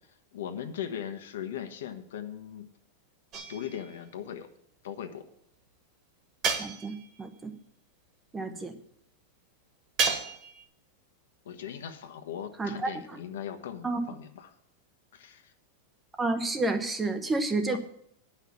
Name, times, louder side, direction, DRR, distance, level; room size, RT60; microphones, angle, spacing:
voice 1, 0.1-2.7 3.5-4.5 4.8-5.3 8.5-8.6 11.4-14.5 15.1-15.5 17.7-17.8, left 9 dB, 90° left, 7 dB, 1.3 m, -39 dB
sound 1, 3.3-4.0 6.4-7.2 10.0-10.6, right 5 dB, 25° right, 1.4 m, -31 dB
voice 2, 6.6-7.5 8.3-8.7 12.6-12.9 13.8-14.0 16.2-17.8, right 2 dB, 10° right, 8 dB, 0.8 m, -30 dB
9.7 x 5.7 x 8.4 m, 0.70 s
supercardioid pair, 165°, 0 cm